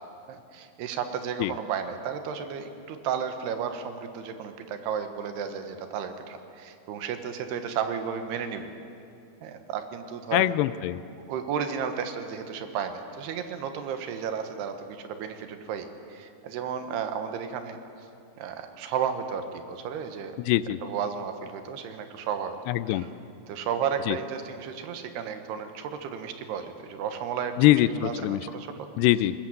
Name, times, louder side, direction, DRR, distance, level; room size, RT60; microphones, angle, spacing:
voice 1, 0.3-8.7 9.4-10.5 11.3-17.8 18.4-20.4 20.8-22.6 22.9-23.1 23.5-28.7, right 7 dB, 85° right, 8 dB, 3.3 m, -33 dB
voice 2, 10.3-11.0 20.5-20.8 22.7-23.0 24.1-24.2 27.6-28.4 29.0-29.3, left 15 dB, 85° left, 15 dB, 2.7 m, -23 dB
21.0 x 20.0 x 7.9 m, 2.6 s
omnidirectional pair, 4.6 m